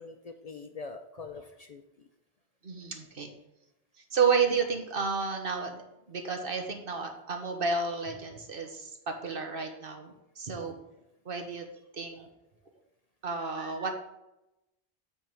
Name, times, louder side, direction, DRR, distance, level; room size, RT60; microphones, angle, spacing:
voice 1, 0.0-2.1 10.5-10.8, left 4 dB, 50° left, 5 dB, 0.5 m, -44 dB
voice 2, 2.6-3.3 4.1-5.8 6.1-10.8 11.2-11.7 11.9-12.3 13.2-13.9, right 5 dB, 60° right, 4 dB, 1.3 m, -31 dB
9.5 x 3.5 x 6.2 m, 0.91 s
omnidirectional pair, 1.1 m